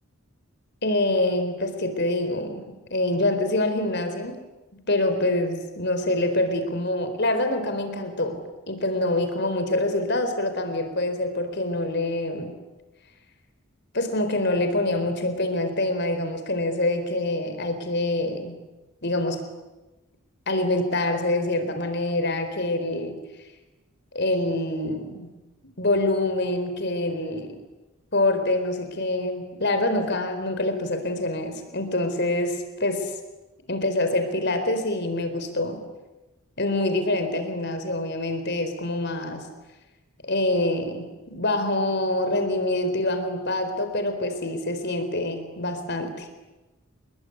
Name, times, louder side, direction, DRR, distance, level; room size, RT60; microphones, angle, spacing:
voice 1, 0.8-4.4 4.9-12.6 13.9-18.6 19.0-19.4 20.5-23.2 24.1-25.3 25.8-27.6 28.1-33.1 33.7-35.8 36.6-39.5 40.2-46.3, left 2 dB, 50° left, 8 dB, 4.3 m, -25 dB
28.5 x 21.5 x 9.6 m, 1.1 s
head